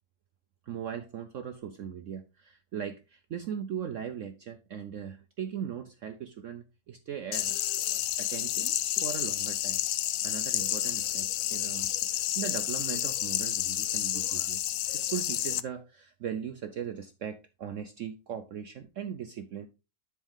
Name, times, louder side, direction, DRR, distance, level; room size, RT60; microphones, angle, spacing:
voice 1, 0.6-9.8 10.2-14.6 14.9-19.7, right 8 dB, 65° right, 0.7 m, -39 dB
sound 1, 7.3-15.6, left 12 dB, 85° left, 0.7 m, -30 dB
10.5 x 4.5 x 3.6 m
omnidirectional pair, 1.9 m